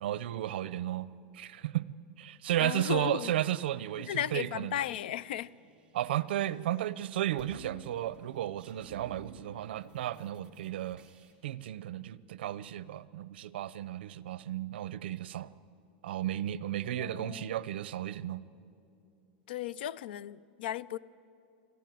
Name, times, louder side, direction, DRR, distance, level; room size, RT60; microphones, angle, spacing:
voice 1, 0.0-4.8 5.9-11.0 11.4-15.5 16.0-18.4, right 12 dB, 80° right, 0.7 m, -34 dB
voice 2, 2.6-3.3 4.0-5.5 16.9-17.7 19.5-21.0, left 12 dB, 70° left, 0.5 m, -36 dB
sound 1, 5.3-7.0 7.2-11.3, right 4 dB, 15° right, 2.2 m, -55 dB
25.5 x 15.0 x 9.3 m
supercardioid pair, 170°, 6 cm